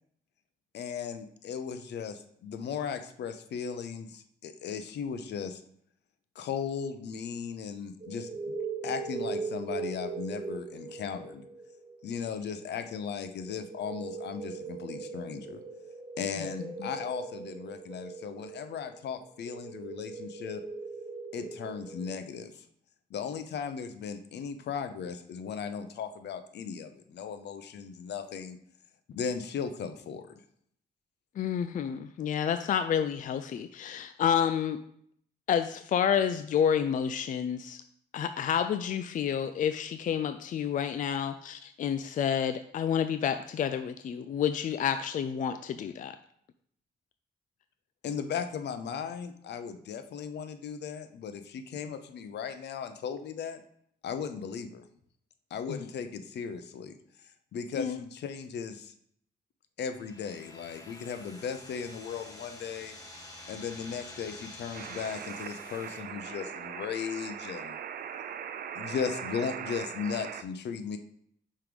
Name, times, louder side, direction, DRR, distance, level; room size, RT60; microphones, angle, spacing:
voice 1, 0.7-5.6 6.3-8.5 8.8-11.4 12.0-15.6 16.2-20.6 21.3-22.6 23.1-28.6 29.1-30.3 48.0-53.6 54.0-54.8 55.5-58.9 59.8-63.0 63.5-67.8 68.7-71.0, left 6 dB, 75° left, 9 dB, 0.7 m, -37 dB
sound 1, 8.0-22.2, right 4 dB, 30° right, 0.8 m, -40 dB
voice 2, 31.4-34.8 35.5-37.8 38.1-46.2 55.7-55.8 57.8-58.0, left 8 dB, 50° left, 9 dB, 0.4 m, -29 dB
sound 2, 59.9-66.0, left 1 dB, 20° left, 1.8 m, -48 dB
sound 3, 64.7-70.4, right 8 dB, 60° right, 0.5 m, -40 dB
5.6 x 4.7 x 5.1 m, 0.67 s
cardioid pair, 115°, 18 cm